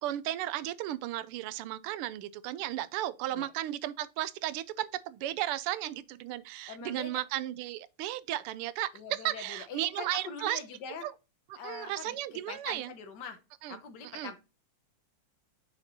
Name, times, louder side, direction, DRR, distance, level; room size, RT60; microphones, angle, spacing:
voice 1, 0.0-10.6 11.0-11.1 11.5-12.9 13.6-14.3, right 14 dB, 85° right, 1.5 m, -35 dB
voice 2, 6.7-7.2 8.9-11.0 11.5-12.2 12.5-13.4 13.7-14.4, left 5 dB, 55° left, 1.6 m, -43 dB
7.1 x 5.9 x 2.7 m
omnidirectional pair, 2.4 m